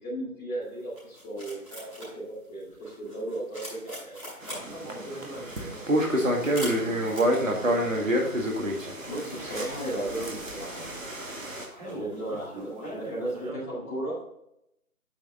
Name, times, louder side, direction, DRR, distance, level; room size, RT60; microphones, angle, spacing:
voice 1, 0.0-4.2 4.5-4.6 9.1-10.9 11.7-14.1, right 1 dB, 10° left, -14 dB, 3.2 m, -35 dB
sound 1, 0.6-13.5, equal, 5° right, 2.8 m, -47 dB
sound 2, 4.4-11.7, equal, 60° right, 2.1 m, -28 dB
voice 2, 4.6-6.3 6.7-8.3 11.7-14.1, right 1 dB, 30° right, -6 dB, 3.4 m, -42 dB
8.6 x 6.0 x 3.9 m, 0.80 s
figure-of-eight pair, 165°, 43 cm